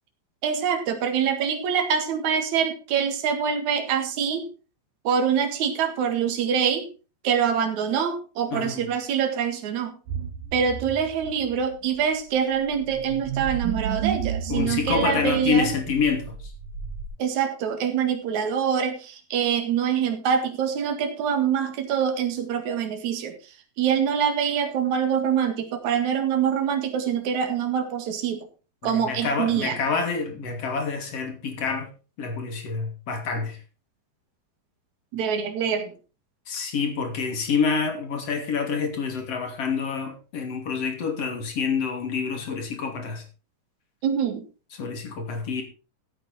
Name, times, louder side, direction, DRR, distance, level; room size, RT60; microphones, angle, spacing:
voice 1, 0.4-4.5 5.0-6.9 7.2-10.0 10.5-15.7 17.2-28.5 28.8-29.8 35.1-35.9 44.0-44.4, right 7 dB, 65° right, 3.2 m, -25 dB
voice 2, 8.5-8.8 14.5-16.4 28.8-31.9 32.2-33.6 36.5-43.2 44.8-45.6, left 5 dB, 50° left, 3.6 m, -27 dB
sound 1, 10.1-17.1, right 9 dB, 80° right, 3.1 m, -33 dB
14.5 x 9.0 x 4.3 m
omnidirectional pair, 3.8 m